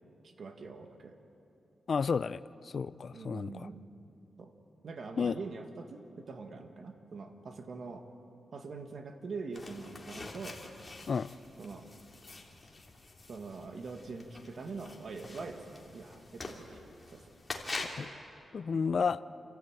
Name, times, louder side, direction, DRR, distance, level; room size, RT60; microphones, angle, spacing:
voice 1, 0.2-1.2 3.1-3.8 4.4-4.5 4.8-8.1 8.5-10.6 11.6-11.9 13.3-16.8 17.1-17.2 18.7-19.0, right 4 dB, 55° right, 5 dB, 1.9 m, -43 dB
voice 2, 1.9-3.7 5.2-5.4 11.1-11.3 18.0-18.1 18.5-19.2, left 5 dB, 50° left, 17 dB, 0.5 m, -31 dB
sound 1, 9.5-18.1, left 2 dB, 25° left, 3.0 m, -45 dB
28.5 x 15.0 x 9.1 m, 2.8 s
cardioid pair, 100°, 0 cm